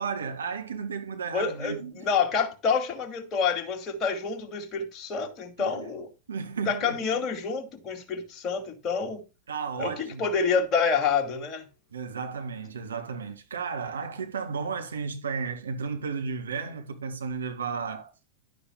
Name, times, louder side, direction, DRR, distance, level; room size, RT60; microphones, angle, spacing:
voice 1, 0.0-2.0 5.6-5.8 6.3-7.2 9.5-10.2 11.9-18.1, right 5 dB, 70° right, 2.1 m, -33 dB
voice 2, 1.3-6.1 6.7-9.2 9.8-11.7, left 5 dB, 30° left, 2.5 m, -28 dB
11.0 x 9.7 x 2.2 m
figure-of-eight pair, 90°, 0 cm